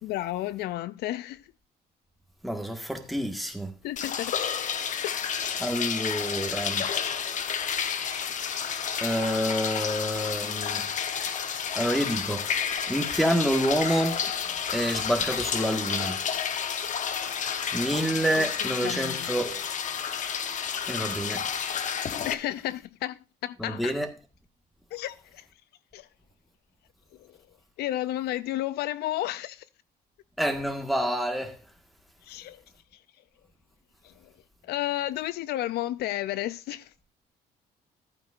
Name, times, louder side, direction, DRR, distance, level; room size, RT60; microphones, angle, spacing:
voice 1, 0.0-1.5 3.8-4.4 5.0-5.6 6.4-6.6 18.1-19.3 22.2-24.0 24.9-25.5 25.9-26.1 27.2-27.4 27.8-29.6 32.2-32.6 34.0-34.3 34.6-36.9, left 14 dB, 75° left, 0.5 m, -33 dB
voice 2, 2.4-3.7 5.6-6.9 9.0-10.9 11.7-14.2 14.7-16.2 17.7-19.6 20.9-21.5 23.6-24.1 30.4-31.6, equal, ahead, 1.6 m, -28 dB
sound 1, 4.0-22.3, left 7 dB, 45° left, 0.9 m, -31 dB
14.0 x 9.1 x 2.5 m
cardioid pair, 110°, 17 cm